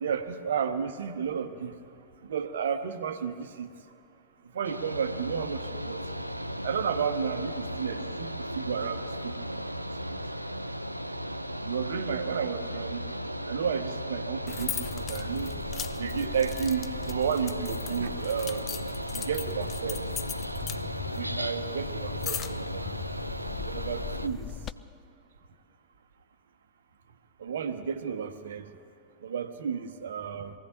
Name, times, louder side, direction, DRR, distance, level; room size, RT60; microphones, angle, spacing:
voice 1, 0.0-1.8 2.3-3.7 4.5-6.0 6.6-9.4 10.1-10.2 11.6-13.0 13.5-15.6 16.0-18.7 19.1-20.0 21.1-22.9 23.7-24.5 27.4-28.7 29.2-30.5, right 7 dB, 65° right, 10 dB, 0.8 m, -32 dB
Mechanical fan, 4.6-24.3, equal, 90° right, 0.4 m, -36 dB
sound 1, 14.5-24.7, left 9 dB, 25° left, 0.4 m, -39 dB
23.0 x 16.0 x 3.0 m, 2.7 s
figure-of-eight pair, 90°, 0 cm